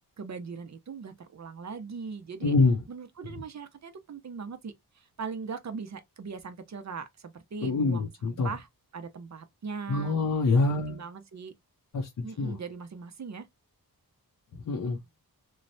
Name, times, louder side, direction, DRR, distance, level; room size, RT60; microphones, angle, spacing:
voice 1, 0.2-2.5 2.9-10.2 10.9-11.5 12.2-13.5, right 5 dB, 50° right, 0.6 m, -40 dB
voice 2, 2.4-2.8 7.6-8.5 9.9-11.0 11.9-12.6 14.7-15.0, left 3 dB, 55° left, 0.6 m, -25 dB
3.1 x 2.1 x 2.6 m
wide cardioid pair, 115°, 37 cm